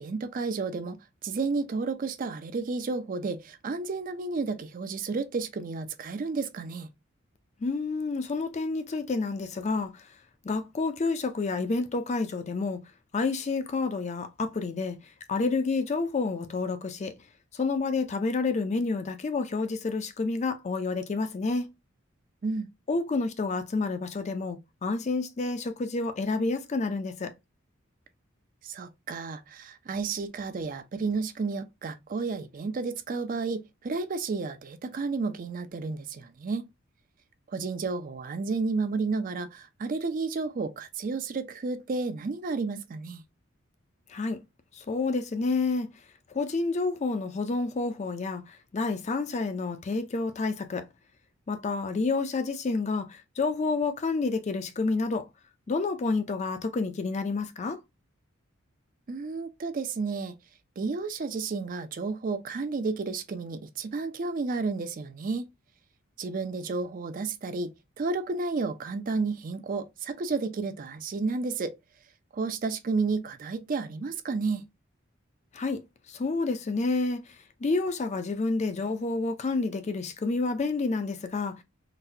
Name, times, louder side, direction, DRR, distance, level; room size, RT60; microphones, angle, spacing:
voice 1, 0.0-6.9 22.4-22.7 28.6-36.7 37.5-43.2 59.1-60.4 60.8-65.4 66.2-71.7 72.3-74.6, right 4 dB, 40° right, 0.4 m, -31 dB
voice 2, 7.6-10.1 10.4-12.8 13.1-15.0 15.3-17.1 17.5-21.7 22.9-27.3 44.1-44.4 44.7-45.9 46.3-50.8 51.5-55.3 55.7-57.8 75.5-75.8 76.1-77.2 77.6-81.6, left 3 dB, 35° left, 0.4 m, -29 dB
3.9 x 2.1 x 2.7 m
head